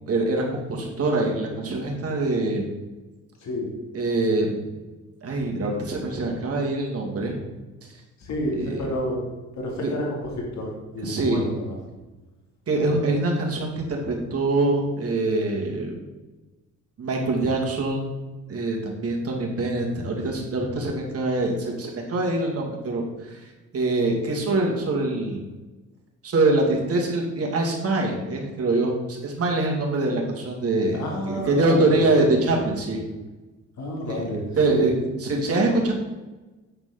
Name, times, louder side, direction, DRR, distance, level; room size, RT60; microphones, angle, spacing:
voice 1, 0.1-2.7 3.9-4.8 5.2-7.4 8.5-8.9 9.8-9.9 11.0-11.4 12.7-16.0 17.0-18.2 18.5-23.4 23.7-25.4 26.2-33.0 34.1-34.3 34.5-35.9, right 2 dB, 50° right, 0 dB, 2.2 m, -24 dB
voice 2, 8.3-9.2 9.6-10.1 10.6-11.8 30.9-32.1 33.8-34.8, left 1 dB, 65° left, -1 dB, 2.6 m, -29 dB
8.8 x 4.6 x 5.8 m, 1.2 s
cardioid pair, 90°, 30 cm